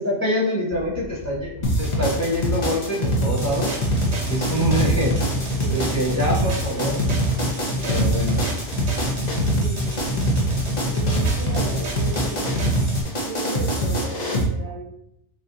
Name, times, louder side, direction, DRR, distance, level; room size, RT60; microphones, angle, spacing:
voice 1, 0.0-3.8 4.3-5.3 5.7-7.0 7.8-8.4, equal, 15° left, -6 dB, 0.9 m, -25 dB
sound 1, 0.7-12.5, left 2 dB, 75° left, 1.7 m, -39 dB
sound 2, 1.6-14.4, right 1 dB, 40° left, 0.9 m, -24 dB
sound 3, 3.4-13.0, equal, 75° right, 1.2 m, -28 dB
voice 2, 5.6-6.0 9.4-10.0 10.9-12.7 13.3-14.9, right 3 dB, 25° right, -6 dB, 1.0 m, -36 dB
5.9 x 2.9 x 2.7 m, 0.79 s
omnidirectional pair, 1.2 m